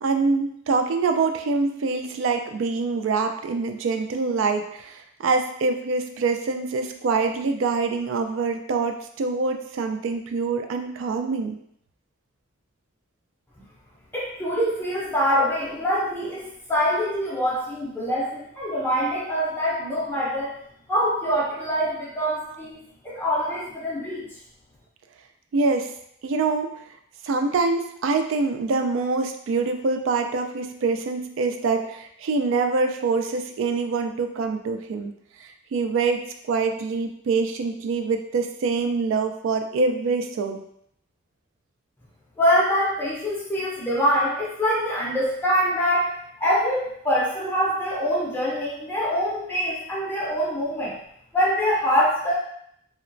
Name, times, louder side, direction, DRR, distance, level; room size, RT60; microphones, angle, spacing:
voice 1, 0.0-11.6 25.5-25.9 26.2-26.7 27.2-35.1 35.4-40.6, right 4 dB, 70° right, 6 dB, 0.3 m, -25 dB
voice 2, 14.1-20.5 20.9-22.8 23.0-24.3 42.4-46.1 46.4-51.0 51.3-52.3, equal, 10° left, -7 dB, 0.5 m, -24 dB
2.9 x 2.1 x 2.5 m, 0.70 s
head